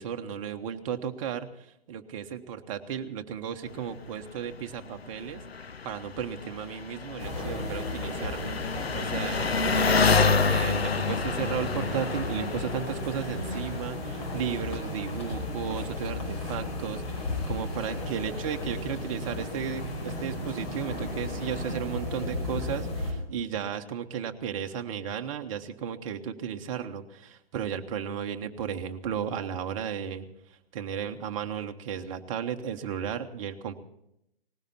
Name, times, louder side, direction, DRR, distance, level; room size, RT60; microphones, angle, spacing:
voice 1, 0.0-5.4 5.8-8.6 8.9-33.7, right 8 dB, 35° right, 5 dB, 1.2 m, -34 dB
Engine, 3.7-21.8, left 5 dB, 80° left, 0.8 m, -31 dB
sound 1, 7.2-23.1, left 1 dB, 40° left, 5.4 m, -34 dB
19.0 x 16.0 x 4.3 m, 0.80 s
figure-of-eight pair, 125°, 30 cm